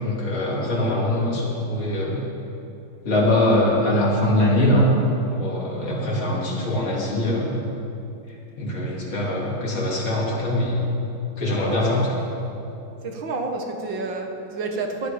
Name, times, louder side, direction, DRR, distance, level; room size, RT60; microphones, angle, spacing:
voice 1, 0.0-2.2 3.1-4.9 5.3-7.6 8.6-10.9 11.4-12.2, left 1 dB, 85° left, -4 dB, 3.9 m, -22 dB
voice 2, 13.0-15.1, right 3 dB, 70° right, 3 dB, 2.2 m, -29 dB
19.0 x 12.5 x 5.2 m, 2.8 s
omnidirectional pair, 2.2 m